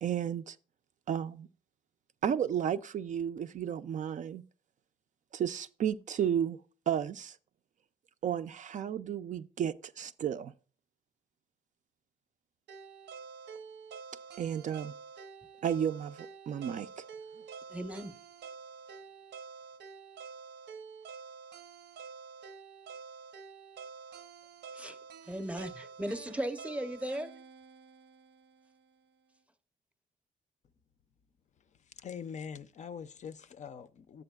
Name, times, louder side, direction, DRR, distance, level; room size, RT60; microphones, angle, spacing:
voice 1, 0.0-0.6 1.1-1.5 2.2-4.4 5.3-6.6 6.9-7.4 8.2-10.5 14.4-14.9 15.6-17.0, right 9 dB, 45° right, 0.4 m, -33 dB
sound 1, 12.7-28.8, right 5 dB, 90° right, 0.7 m, -48 dB
voice 2, 17.7-18.2 24.7-25.0 25.2-27.4, right 1 dB, 5° right, 0.7 m, -37 dB
voice 3, 31.8-34.2, left 7 dB, 45° left, 0.4 m, -44 dB
10.5 x 7.9 x 2.2 m
cardioid pair, 135°, 17 cm